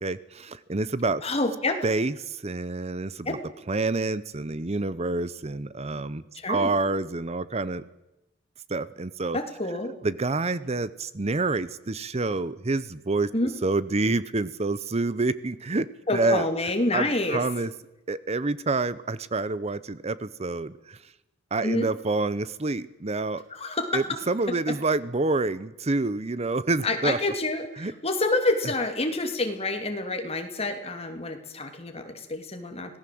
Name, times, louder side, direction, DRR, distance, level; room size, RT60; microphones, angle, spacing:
voice 1, 0.0-1.2 1.8-3.4 3.7-6.2 6.5-7.8 8.7-9.4 10.0-13.3 13.6-15.9 16.1-16.4 16.9-17.7 18.1-21.0 21.5-23.4 23.9-27.2 27.8-27.9, right 3 dB, 35° right, 16 dB, 0.8 m, -27 dB
voice 2, 1.2-1.8 3.2-3.4 6.3-6.7 9.3-9.9 13.3-13.5 16.1-17.4 21.6-21.9 23.5-24.0 26.8-33.0, left 2 dB, 35° left, 5 dB, 3.0 m, -28 dB
25.5 x 18.5 x 7.8 m, 0.94 s
head